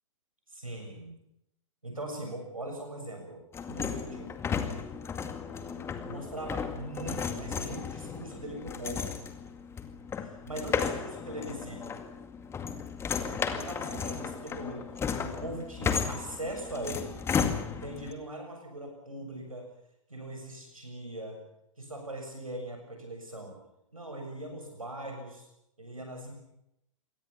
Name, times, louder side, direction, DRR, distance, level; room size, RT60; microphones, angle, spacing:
voice 1, 0.5-1.2 1.8-4.3 6.0-9.2 10.2-12.0 13.5-14.9 15.2-17.2 17.7-19.7 20.1-21.4 21.8-23.6 23.9-25.5 25.8-26.3, right 1 dB, 80° right, 3 dB, 7.1 m, -40 dB
sound 1, 3.5-18.1, left 6 dB, 15° left, 2.2 m, -34 dB
27.5 x 23.0 x 5.9 m, 0.80 s
figure-of-eight pair, 110°, 17 cm